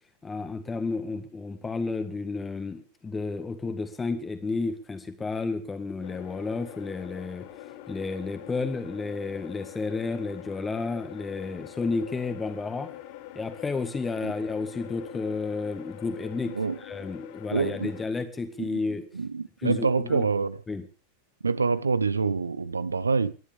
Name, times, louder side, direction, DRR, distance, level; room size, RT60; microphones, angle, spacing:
voice 1, 0.2-7.5 7.9-12.9 13.4-19.0 19.6-20.3 20.7-20.8, left 3 dB, 15° left, 1.9 m, -32 dB
sound 1, 6.0-18.1, left 14 dB, 50° left, 1.4 m, -44 dB
voice 2, 17.5-17.9 18.6-18.8 19.1-20.6 21.4-23.3, right 4 dB, 75° right, 0.9 m, -26 dB
29.0 x 11.0 x 3.6 m
figure-of-eight pair, 90°, 0 cm